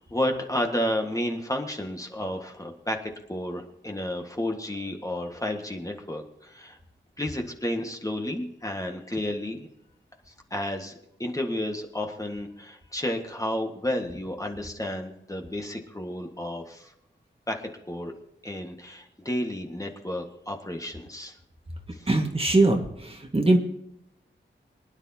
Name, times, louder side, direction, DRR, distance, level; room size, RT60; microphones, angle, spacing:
voice 1, 0.0-6.8 7.2-9.7 10.3-16.9 17.5-18.1 18.4-21.4 21.9-22.1, left 1 dB, 15° left, 2 dB, 1.7 m, -32 dB
voice 2, 22.1-23.6, right 2 dB, 30° right, 3 dB, 1.8 m, -22 dB
25.0 x 10.5 x 2.9 m, 0.81 s
wide cardioid pair, 95°, 20 cm